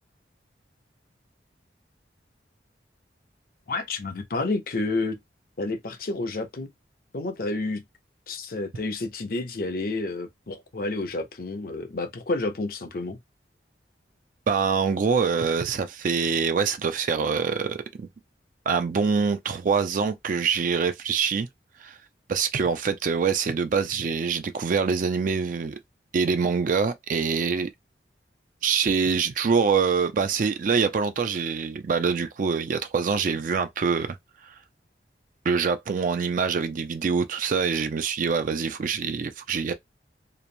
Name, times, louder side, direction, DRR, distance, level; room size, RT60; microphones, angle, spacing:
voice 1, 3.7-5.2 5.6-6.7 7.1-7.8 8.3-13.2, left 2 dB, 55° left, 0.6 m, -30 dB
voice 2, 14.5-18.1 18.7-21.5 21.8-22.0 22.3-25.8 26.1-27.7 28.6-34.2 34.5-34.6 35.4-39.7, right 5 dB, 50° right, 0.4 m, -25 dB
2.9 x 2.0 x 2.5 m
head